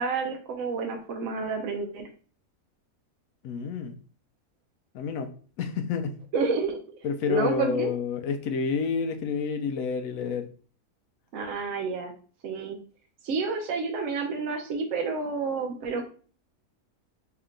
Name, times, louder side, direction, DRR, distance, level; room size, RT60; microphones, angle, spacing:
voice 1, 0.0-2.1 6.3-6.8 7.3-7.9 11.3-12.1 12.4-12.8 13.2-16.1, right 4 dB, 70° right, 0.9 m, -29 dB
voice 2, 3.4-4.0 4.9-5.3 5.6-6.2 7.0-10.5, left 5 dB, 75° left, 0.9 m, -29 dB
3.2 x 2.9 x 3.7 m
omnidirectional pair, 1.5 m